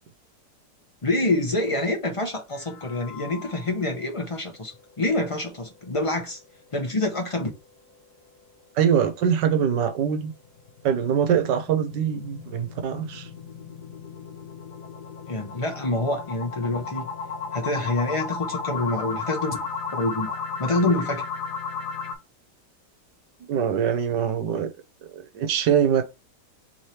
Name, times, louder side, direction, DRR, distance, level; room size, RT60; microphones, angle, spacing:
voice 1, 1.0-6.4 6.7-7.5 15.3-17.1 17.5-19.6 19.9-21.3, left 2 dB, 40° left, 0.4 m, -26 dB
sound 1, 2.5-4.0 4.4-4.5 4.9-5.0 5.4-5.5 10.3-22.1, left 5 dB, 70° left, 1.4 m, -35 dB
voice 2, 8.8-10.3 10.8-13.3 23.5-24.7 25.3-26.0, right 8 dB, 85° right, 1.4 m, -23 dB
3.6 x 3.2 x 4.2 m
omnidirectional pair, 1.9 m